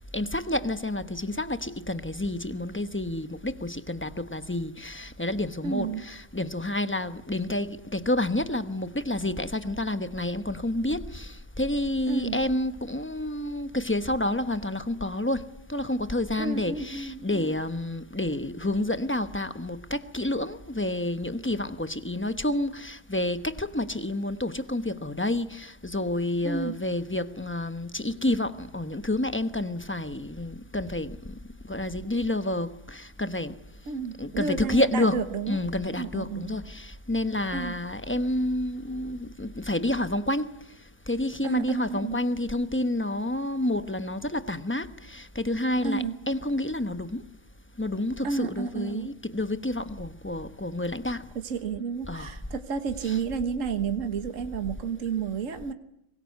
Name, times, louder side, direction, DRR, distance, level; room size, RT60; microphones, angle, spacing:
voice 1, 0.1-31.4 31.6-33.6 34.2-40.5 41.1-47.2 47.8-51.3 52.1-52.4 53.0-53.2, left 1 dB, 10° left, 10 dB, 0.9 m, -29 dB
voice 2, 5.6-6.0 12.1-12.4 16.4-17.5 26.4-26.8 33.9-35.6 35.9-36.5 37.5-37.8 41.4-42.2 45.8-46.2 48.2-49.1 51.3-55.7, right 5 dB, 60° right, 8 dB, 1.7 m, -31 dB
24.0 x 21.0 x 9.5 m, 0.79 s
omnidirectional pair, 1.5 m